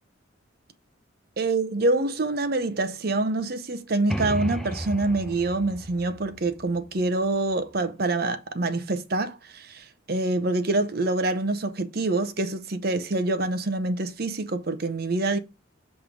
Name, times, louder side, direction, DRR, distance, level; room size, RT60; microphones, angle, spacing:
voice 1, 1.4-15.4, right 2 dB, 50° right, 0.8 m, -26 dB
sound 1, 4.1-7.8, equal, ahead, 0.6 m, -35 dB
7.5 x 3.4 x 5.0 m
head